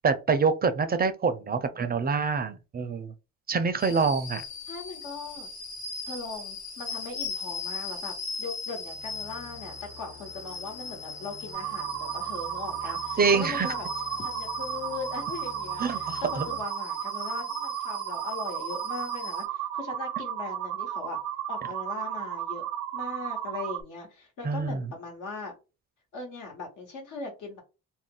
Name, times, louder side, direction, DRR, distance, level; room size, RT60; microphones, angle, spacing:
voice 1, 0.0-3.1 3.5-4.4 13.2-13.7 15.8-16.5 24.4-24.8, right 5 dB, 30° right, 0.4 m, -26 dB
voice 2, 1.5-2.1 4.7-5.5 6.1-8.1 8.4-13.9 14.2-21.2 21.5-22.6 22.9-25.5 26.1-27.6, left 4 dB, 75° left, 1.3 m, -39 dB
sound 1, 3.8-19.4, left 4 dB, 60° left, 1.2 m, -39 dB
sound 2, 8.8-16.6, left 3 dB, 45° left, 0.9 m, -49 dB
sound 3, 11.5-23.8, right 11 dB, 85° right, 0.5 m, -34 dB
2.4 x 2.1 x 3.6 m
cardioid pair, 90°, 30 cm